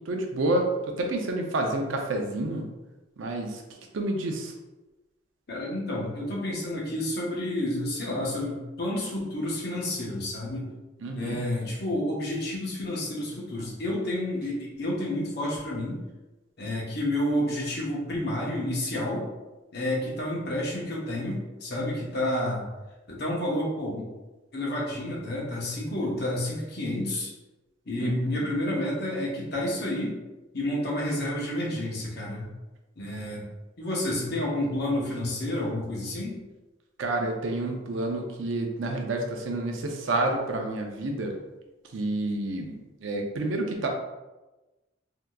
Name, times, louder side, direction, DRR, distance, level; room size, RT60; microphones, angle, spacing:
voice 1, 0.1-2.7 3.2-3.6 3.9-4.5 11.0-11.4 28.0-28.1 37.0-41.4 41.9-43.9, right 2 dB, 90° right, 2 dB, 0.5 m, -29 dB
voice 2, 5.5-10.7 11.1-16.0 16.6-19.3 19.7-22.6 23.1-24.0 24.5-27.3 27.9-30.2 30.5-32.5 33.0-33.4 33.8-36.4, left 1 dB, 55° left, -4 dB, 0.9 m, -30 dB
3.4 x 2.8 x 2.3 m, 1.1 s
head